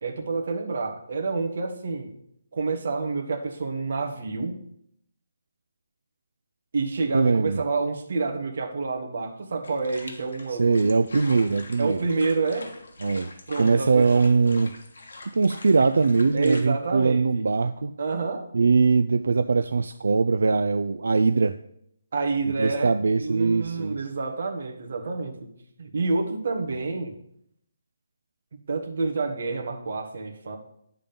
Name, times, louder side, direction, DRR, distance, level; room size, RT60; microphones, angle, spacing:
voice 1, 0.0-2.1 2.5-4.6 6.7-10.9 11.8-12.8 13.5-14.1 16.3-17.5 18.0-18.5 22.1-25.5 25.8-27.1 28.7-30.6, right 3 dB, 45° right, 3 dB, 1.2 m, -28 dB
voice 2, 7.1-7.6 10.6-12.0 13.0-14.7 15.4-17.9 18.5-21.6 22.6-24.0, right 4 dB, 70° right, 9 dB, 0.3 m, -21 dB
sound 1, 9.6-16.6, left 2 dB, 70° left, 1.4 m, -44 dB
10.0 x 3.7 x 5.3 m, 0.73 s
hypercardioid pair, 175°, 0 cm